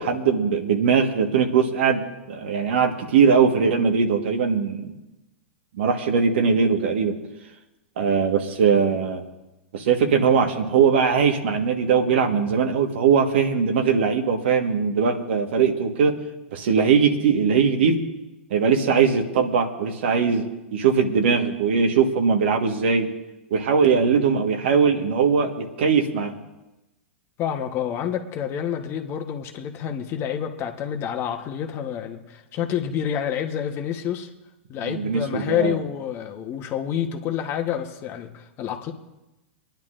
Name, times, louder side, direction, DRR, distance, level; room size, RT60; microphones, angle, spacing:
voice 1, 0.0-4.9 5.8-7.1 8.0-9.2 9.7-16.1 16.5-18.0 18.5-20.4 20.7-23.1 23.5-26.3 34.8-35.8, right 6 dB, 70° right, 5 dB, 1.4 m, -20 dB
voice 2, 27.4-34.3 34.7-38.9, left 9 dB, 40° left, 5 dB, 1.1 m, -28 dB
25.5 x 10.5 x 2.5 m, 0.99 s
hypercardioid pair, 105°, 6 cm